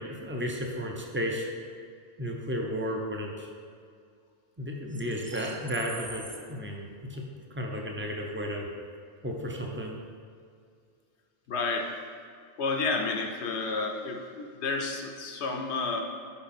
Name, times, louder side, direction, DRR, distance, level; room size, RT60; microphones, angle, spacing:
voice 1, 0.0-1.5 2.2-3.5 4.6-7.2 7.5-8.7 9.2-9.9, equal, 15° right, 0 dB, 0.5 m, -33 dB
voice 2, 11.5-11.9 12.6-16.0, left 3 dB, 70° left, 3 dB, 1.0 m, -31 dB
5.8 x 5.0 x 4.3 m, 2.2 s
omnidirectional pair, 1.2 m